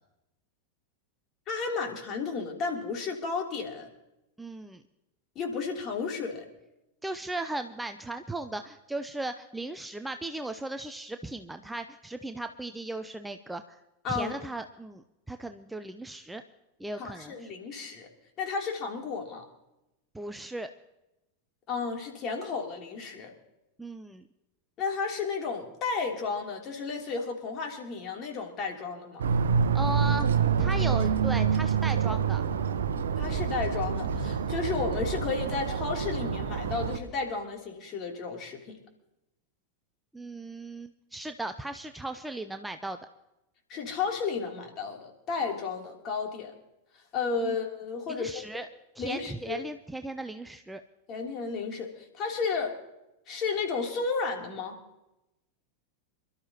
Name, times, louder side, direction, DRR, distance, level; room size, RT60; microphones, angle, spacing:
voice 1, 1.5-3.9 5.3-6.4 14.0-14.4 17.0-18.1 18.4-19.5 21.7-23.3 24.8-29.2 33.2-38.8 43.7-46.5 47.1-48.6 49.0-49.6 51.1-52.8 53.3-54.8, left 4 dB, 35° left, 1 dB, 3.1 m, -33 dB
voice 2, 4.4-4.8 7.0-13.8 14.1-16.4 16.8-17.5 20.1-20.7 23.8-24.2 29.7-30.3 30.6-32.4 40.1-43.0 47.4-47.5 48.1-48.7 49.0-50.8, right 2 dB, 5° right, 8 dB, 0.6 m, -37 dB
sound 1, 29.2-37.0, right 6 dB, 65° right, 0.9 m, -27 dB
27.0 x 12.5 x 2.9 m, 0.93 s
figure-of-eight pair, 90°, 0 cm